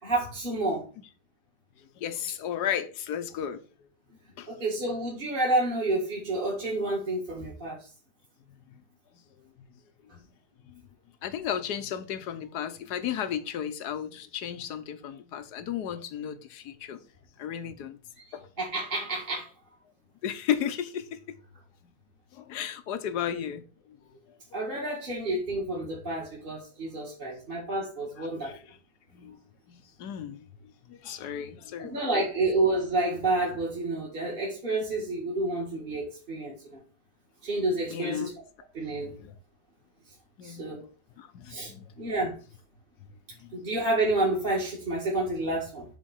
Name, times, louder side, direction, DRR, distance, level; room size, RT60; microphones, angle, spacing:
voice 1, 0.0-0.8 4.5-7.9 18.2-19.5 24.5-28.6 31.8-36.8 37.4-38.3 38.7-39.1 40.4-40.8 41.5-41.7 42.0-42.4 43.5-45.9, right 2 dB, 30° right, 2.0 m, -29 dB
voice 2, 2.0-3.9 4.4-4.5 9.1-9.2 9.6-9.7 10.1-10.3 10.6-10.8 11.2-17.0 17.4-18.0 18.3-18.5 20.2-21.2 22.3-24.0 24.5-24.6 28.2-28.6 29.1-29.4 29.7-32.3 37.9-38.4 39.0-39.3 40.4-40.8 41.2-41.9 43.4-43.5, left 9 dB, 75° left, 1.4 m, -34 dB
6.3 x 4.2 x 6.5 m
omnidirectional pair, 1.8 m